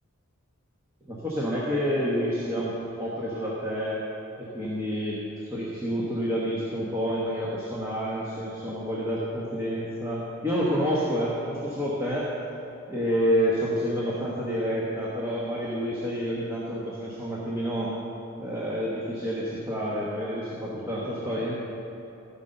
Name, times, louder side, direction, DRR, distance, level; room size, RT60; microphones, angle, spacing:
voice 1, 1.1-2.7 3.0-4.0 4.4-5.2 5.5-12.3 12.9-17.9 18.4-21.6, equal, 15° right, -6 dB, 1.2 m, -28 dB
15.0 x 5.7 x 6.7 m, 2.9 s
head